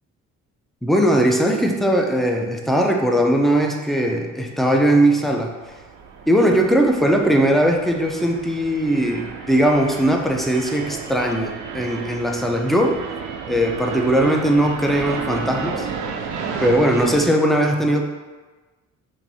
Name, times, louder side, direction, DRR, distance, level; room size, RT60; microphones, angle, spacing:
voice 1, 0.8-5.5 6.3-13.0 13.5-15.9 16.6-18.0, right 1 dB, ahead, 2 dB, 0.4 m, -19 dB
sound 1, 5.6-17.2, right 6 dB, 80° right, 0.5 m, -32 dB
4.7 x 2.6 x 2.7 m, 1.3 s
cardioid pair, 90°, 30 cm